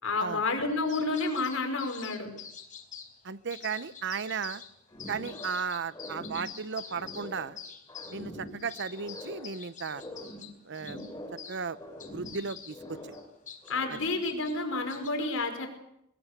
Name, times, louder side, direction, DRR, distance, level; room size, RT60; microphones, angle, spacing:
voice 1, 0.0-2.3 13.7-15.7, left 3 dB, 85° left, 5 dB, 5.2 m, -30 dB
sound 1, 0.9-3.2 3.5-4.7 5.0-11.6 12.0-15.1, left 7 dB, 40° left, 4.4 m, -46 dB
voice 2, 3.2-4.6 5.1-7.6 8.1-10.0 10.7-11.0 11.5-11.8 12.1-13.1 13.9-14.0, right 5 dB, 60° right, 15 dB, 0.8 m, -35 dB
sound 2, 4.9-5.6 5.9-7.6 7.9-9.6 9.9-11.5 11.7-13.3 13.6-14.3, left 1 dB, 15° left, 5.3 m, -44 dB
22.0 x 22.0 x 6.7 m, 0.79 s
head